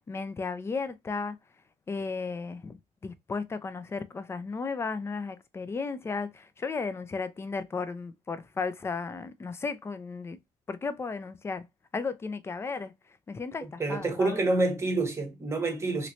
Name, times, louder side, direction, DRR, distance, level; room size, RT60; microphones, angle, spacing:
voice 1, 0.1-1.4 1.9-2.8 3.0-10.4 10.7-11.6 11.9-12.9 13.3-14.5, left 4 dB, 20° left, 0.4 m, -34 dB
voice 2, 13.8-16.1, right 2 dB, 20° right, 0.9 m, -27 dB
3.1 x 2.9 x 2.6 m
cardioid pair, 150°, 14 cm